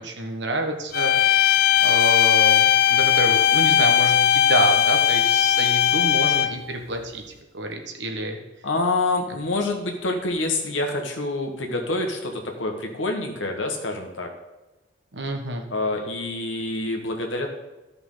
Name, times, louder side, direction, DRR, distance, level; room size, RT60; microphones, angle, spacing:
voice 1, 0.0-7.2 7.5-8.4 15.1-15.7, right 2 dB, 65° right, 3 dB, 1.3 m, -28 dB
sound 1, 0.9-6.7, left 11 dB, 50° left, 0.3 m, -18 dB
voice 2, 8.6-14.3 15.7-17.5, left 2 dB, 80° left, 3 dB, 1.5 m, -27 dB
13.0 x 5.7 x 3.9 m, 1.1 s
head